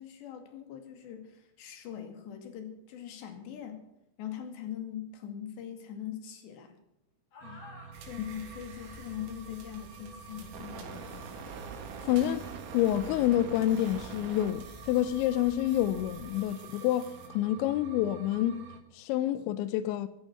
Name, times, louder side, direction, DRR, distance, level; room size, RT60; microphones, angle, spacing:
voice 1, 0.0-3.8 4.2-6.7 7.4-7.6 8.1-11.3, left 9 dB, 65° left, 4.1 m, -42 dB
sound 1, 7.3-7.9 8.8-9.3 10.8-13.1, left 2 dB, 45° left, 5.9 m, -54 dB
sound 2, 7.4-18.8, right 6 dB, 60° right, 2.4 m, -46 dB
sound 3, 7.9-17.3, right 3 dB, 85° right, 5.4 m, -50 dB
voice 2, 12.0-12.5 12.7-20.1, left 12 dB, 80° left, 2.7 m, -28 dB
14.5 x 14.5 x 5.8 m
omnidirectional pair, 5.8 m